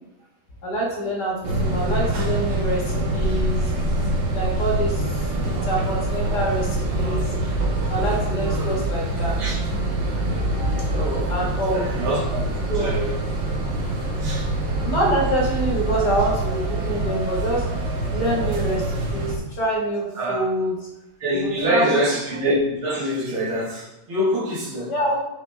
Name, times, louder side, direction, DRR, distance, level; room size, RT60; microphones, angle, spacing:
voice 1, 0.6-3.7 4.3-7.3 7.9-9.4 11.3-11.8 12.7-12.9 14.8-17.7 18.1-20.8 21.3-22.0 24.9-25.2, right 1 dB, 55° left, -3 dB, 2.3 m, -26 dB
sound 1, 1.4-19.4, right 1 dB, 65° right, 1.9 m, -25 dB
voice 2, 8.4-8.8 9.4-9.8 10.9-11.3 11.7-13.2 13.8-14.5 20.1-20.4 21.2-24.9, equal, 85° right, -7 dB, 2.5 m, -26 dB
7.3 x 6.0 x 3.4 m, 0.97 s
omnidirectional pair, 2.2 m